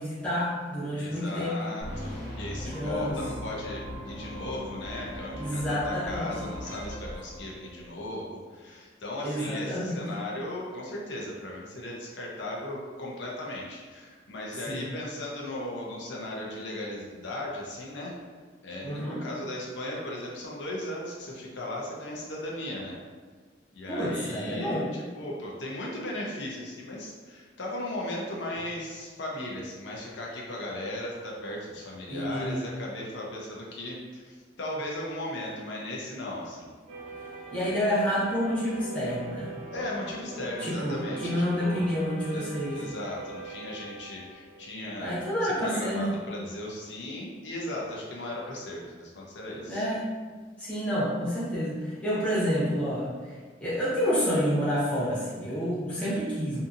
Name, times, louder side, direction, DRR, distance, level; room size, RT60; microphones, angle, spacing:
voice 1, 0.0-1.6 2.5-3.2 5.4-6.3 9.2-10.0 14.6-14.9 18.8-19.2 23.9-24.9 32.1-32.6 37.5-39.5 40.6-42.8 45.0-46.1 49.6-50.1 50.6-53.4 53.6-56.6, equal, 5° left, -9 dB, 0.7 m, -29 dB
voice 2, 1.0-18.1 18.6-23.0 23.7-36.7 39.7-41.9 42.3-45.1 45.4-49.9, left 1 dB, 70° left, -3 dB, 0.5 m, -37 dB
sound 1, 1.8-8.0, left 1 dB, 40° left, 0.9 m, -39 dB
sound 2, 36.9-45.6, right 3 dB, 30° right, 0.6 m, -42 dB
2.6 x 2.6 x 2.5 m, 1.5 s
head